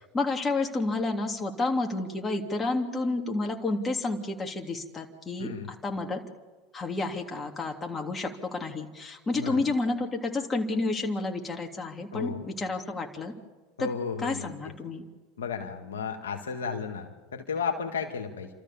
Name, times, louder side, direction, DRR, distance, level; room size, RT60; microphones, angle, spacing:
voice 1, 0.1-6.2 6.7-13.3 13.8-13.9 14.2-15.1, left 3 dB, 25° left, 2 dB, 3.0 m, -30 dB
voice 2, 5.4-5.7 9.3-9.6 12.1-12.5 13.8-14.5 15.4-18.5, left 6 dB, 85° left, 3 dB, 1.9 m, -33 dB
29.5 x 13.5 x 7.1 m, 1.3 s
hypercardioid pair, 85°, 0 cm